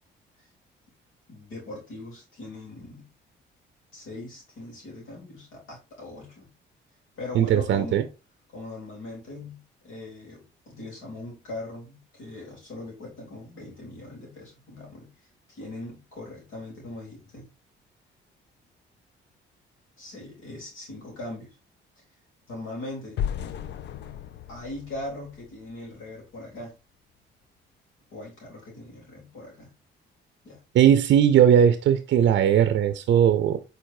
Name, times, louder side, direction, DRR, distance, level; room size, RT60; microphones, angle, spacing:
voice 1, 1.3-3.1 3.9-6.5 7.2-8.1 8.5-15.1 15.5-17.5 20.0-21.6 22.5-23.2 24.5-26.7 28.1-29.7 30.4-30.6, left 2 dB, 85° left, 3.0 m, -40 dB
voice 2, 7.4-8.0 30.7-33.6, right 9 dB, 65° right, 0.5 m, -19 dB
sound 1, 23.2-26.2, left 9 dB, 65° left, 0.4 m, -35 dB
4.6 x 4.2 x 2.6 m
cardioid pair, 90°, 20 cm